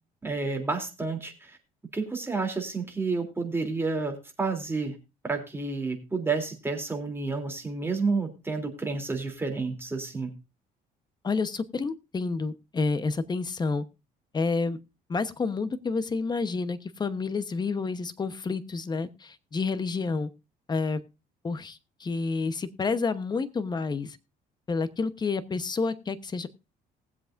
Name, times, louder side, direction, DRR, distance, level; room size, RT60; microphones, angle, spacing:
voice 1, 0.2-1.6 1.9-5.0 5.2-10.3, right 4 dB, 15° right, 4 dB, 3.2 m, -30 dB
voice 2, 11.2-13.8 14.3-14.8 15.1-20.3 20.7-21.0 21.4-24.2 24.7-26.5, left 4 dB, 25° left, 12 dB, 1.0 m, -29 dB
20.0 x 7.8 x 2.6 m, 0.28 s
cardioid pair, 110°, 17 cm